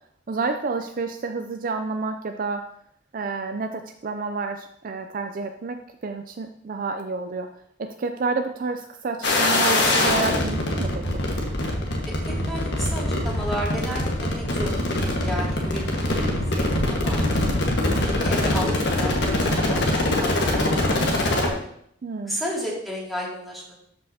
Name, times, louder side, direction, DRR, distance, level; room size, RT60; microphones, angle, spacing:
voice 1, 0.3-2.7 3.1-7.5 7.8-11.2 22.0-22.4, right 4 dB, 50° right, 6 dB, 0.4 m, -29 dB
sound 1, 9.2-21.5, left 1 dB, 65° left, 1.6 m, -23 dB
voice 2, 12.0-14.1 14.4-17.4 18.0-21.7 22.2-23.7, equal, ahead, -6 dB, 2.4 m, -33 dB
12.5 x 5.4 x 2.8 m, 0.68 s
head